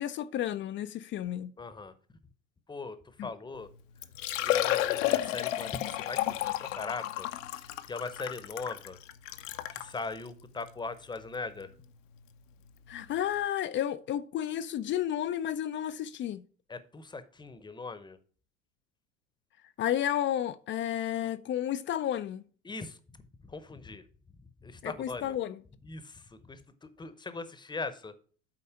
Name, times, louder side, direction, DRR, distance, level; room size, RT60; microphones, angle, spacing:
voice 1, 0.0-1.5 3.2-3.3 12.9-16.4 19.6-22.4 24.8-25.6, left 11 dB, 30° left, 0.4 m, -32 dB
voice 2, 1.6-1.9 2.7-3.7 4.4-7.3 7.6-9.0 9.7-11.7 16.7-18.2 22.6-23.0 23.4-24.0 24.6-25.4 25.8-28.1, left 3 dB, 10° left, 0.8 m, -40 dB
Liquid, 3.6-3.7 4.0-9.9 10.6-10.7 11.2-11.3 12.9-13.0 13.2-13.3, left 13 dB, 70° left, 0.8 m, -32 dB
8.8 x 4.1 x 5.7 m
hypercardioid pair, 75°, 39 cm